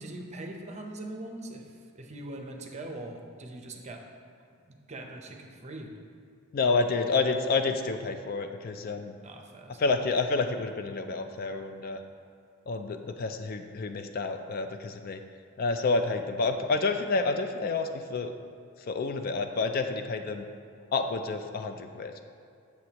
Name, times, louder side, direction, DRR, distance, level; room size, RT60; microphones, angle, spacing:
voice 1, 0.0-4.0 4.7-5.9 9.2-9.8, right 1 dB, 30° right, 3 dB, 0.7 m, -41 dB
voice 2, 6.5-9.1 9.8-12.0 12.7-15.2 15.6-18.3 18.9-20.4 20.9-22.1, left 3 dB, 45° left, 7 dB, 0.4 m, -29 dB
7.7 x 7.0 x 2.9 m, 2.4 s
head